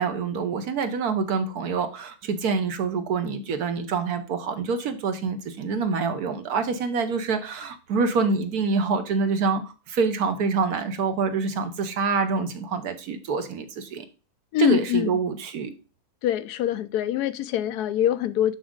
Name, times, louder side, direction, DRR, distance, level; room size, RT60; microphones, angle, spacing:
voice 1, 0.0-9.6 9.9-14.0 14.6-15.7, right 5 dB, 70° right, 1.4 m, -26 dB
voice 2, 14.5-15.2 16.2-18.5, left 12 dB, 85° left, 1.1 m, -24 dB
6.2 x 6.1 x 3.8 m
omnidirectional pair, 1.7 m